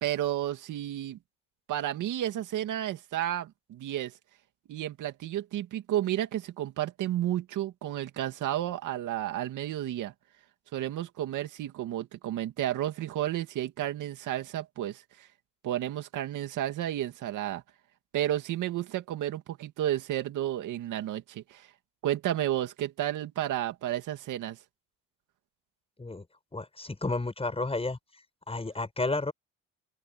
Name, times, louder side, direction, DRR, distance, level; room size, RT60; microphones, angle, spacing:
voice 1, 0.0-1.2 1.7-4.1 4.7-10.1 10.7-15.3 15.6-17.6 18.1-21.7 22.0-24.6, right 12 dB, 80° right, 2.5 m, -32 dB
voice 2, 26.5-28.0 28.5-29.3, left 2 dB, 20° left, 7.5 m, -31 dB
open air
cardioid pair, 90°, 30 cm